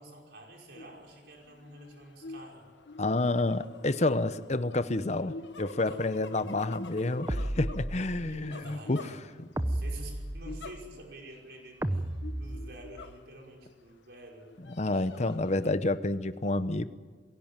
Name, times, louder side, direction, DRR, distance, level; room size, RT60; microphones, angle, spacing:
voice 1, 0.0-2.6 5.9-6.0 8.2-9.3 9.5-12.1 12.3-14.5, right 1 dB, 65° right, 0 dB, 5.4 m, -48 dB
sound 1, 0.7-1.0 1.4-9.7 10.4-11.2 11.5-11.6 12.2-13.7 14.2-15.7, left 2 dB, 85° left, 1.3 m, -46 dB
voice 2, 3.0-9.1 14.7-16.8, left 2 dB, 40° left, 13 dB, 0.8 m, -29 dB
sound 2, 7.3-8.4 9.6-10.8 11.8-13.1, right 1 dB, 15° right, 0.7 m, -33 dB
22.5 x 17.0 x 9.1 m, 1.4 s
head